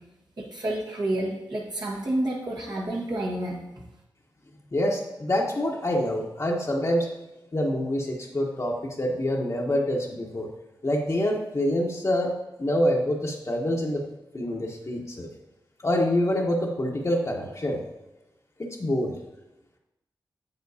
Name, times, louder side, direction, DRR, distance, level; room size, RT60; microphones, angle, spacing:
voice 1, 0.4-3.6, right 1 dB, 60° right, -5 dB, 1.5 m, -29 dB
voice 2, 4.7-7.1 7.5-10.5 10.8-12.3 12.6-14.0 14.3-15.3 15.8-17.8 18.6-19.1, left 1 dB, 40° left, -2 dB, 1.0 m, -26 dB
7.4 x 6.8 x 2.8 m, 0.99 s
cardioid pair, 45°, 8 cm